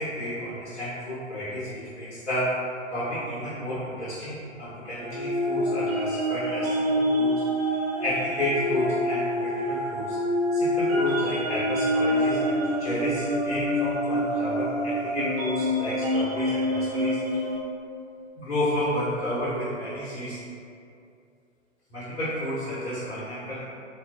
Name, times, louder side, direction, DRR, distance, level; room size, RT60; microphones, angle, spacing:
voice 1, 0.0-7.3 7.7-10.2 10.5-17.4 18.4-20.4 21.9-23.6, left 1 dB, 60° left, -11 dB, 1.1 m, -31 dB
sound 1, 5.0-17.6, equal, 55° right, 0.8 m, -26 dB
3.8 x 2.3 x 2.6 m, 2.5 s
figure-of-eight pair, 115°, 39 cm